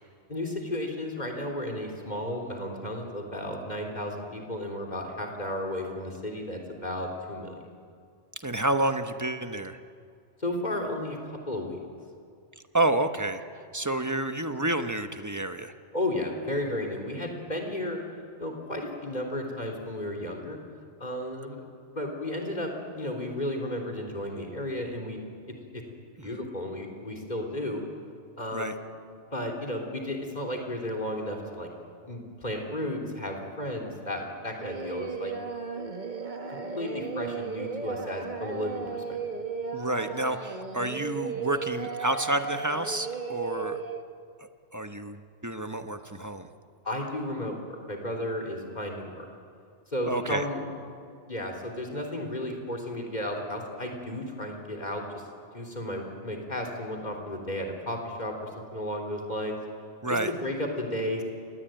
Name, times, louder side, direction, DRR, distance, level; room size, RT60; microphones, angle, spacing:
voice 1, 0.3-7.6 10.4-11.2 11.5-11.8 15.9-18.0 18.4-20.6 21.0-21.6 22.0-25.2 25.5-25.8 26.2-27.8 28.4-28.9 29.3-31.7 32.0-35.3 36.5-39.0 46.8-49.3 49.9-50.6 50.9-51.0 51.3-55.2 55.5-59.6 60.1-61.2, left 1 dB, 35° left, 2 dB, 3.8 m, -33 dB
voice 2, 8.4-9.8 12.7-13.4 13.7-15.7 26.2-26.3 28.5-28.7 39.7-43.8 44.7-46.4 50.1-50.4 60.0-60.3, right 2 dB, 15° right, 8 dB, 1.2 m, -29 dB
Singing, 34.6-44.0, right 5 dB, 40° right, 1.6 m, -35 dB
28.5 x 20.5 x 9.2 m, 2.3 s
omnidirectional pair, 1.2 m